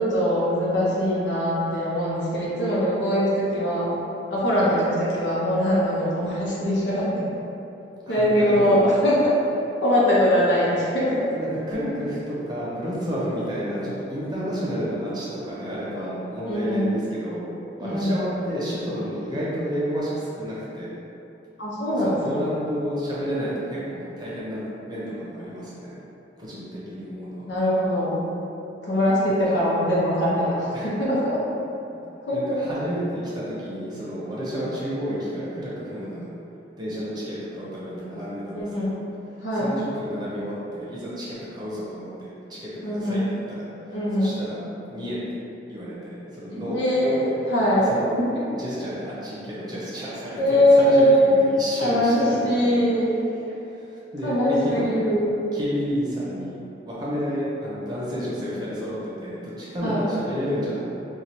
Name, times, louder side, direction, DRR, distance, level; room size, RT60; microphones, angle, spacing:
voice 1, 0.0-3.9 4.3-7.2 8.1-9.4 9.8-11.3 16.4-16.9 17.8-18.2 21.6-22.2 27.5-28.1 28.8-31.4 32.3-32.6 38.5-38.9 39.4-39.7 42.8-43.3 43.9-44.3 46.5-47.9 48.2-48.3 50.3-51.3 51.8-53.1 54.2-55.4 59.8-60.1, equal, 80° left, -7 dB, 0.9 m, -22 dB
voice 2, 8.1-8.8 11.3-17.5 17.8-20.9 21.9-26.0 26.4-27.5 29.4-29.5 30.7-30.9 32.3-36.3 36.8-39.0 39.5-44.6 44.9-45.4 45.7-47.3 47.8-48.2 48.6-52.8 53.7-54.9 55.5-60.8, equal, 25° right, -8 dB, 0.7 m, -31 dB
4.5 x 2.3 x 2.8 m, 2.9 s
head